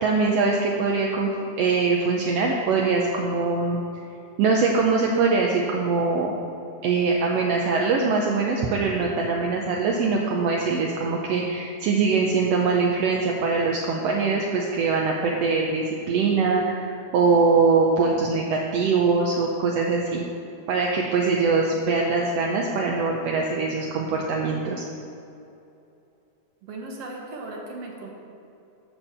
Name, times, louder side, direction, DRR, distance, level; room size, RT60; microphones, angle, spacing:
voice 1, 0.0-1.3 1.6-3.8 4.4-6.3 6.8-16.8 17.1-20.2 20.7-24.8, right 4 dB, 75° right, -1 dB, 1.5 m, -22 dB
voice 2, 26.6-28.1, right 2 dB, 60° right, 0 dB, 2.0 m, -37 dB
13.0 x 4.5 x 6.7 m, 2.7 s
omnidirectional pair, 3.5 m